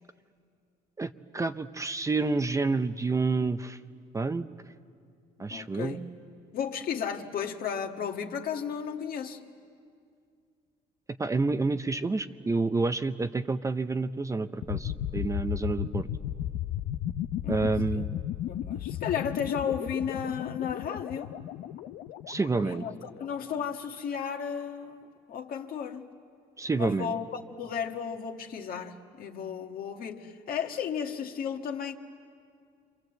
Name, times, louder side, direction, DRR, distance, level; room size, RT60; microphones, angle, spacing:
voice 1, 1.0-3.8 4.1-4.5 5.4-6.0 11.2-16.1 17.5-18.2 22.3-22.9 26.6-27.1, right 3 dB, 20° right, 0.6 m, -29 dB
voice 2, 5.5-6.1 6.5-9.4 17.4-18.1 18.5-21.3 22.6-22.9 23.2-26.1 26.8-31.9, left 7 dB, 60° left, 1.7 m, -34 dB
sound 1, 14.6-23.5, left 12 dB, 85° left, 0.7 m, -35 dB
27.5 x 25.5 x 7.9 m
cardioid pair, 110°, 17 cm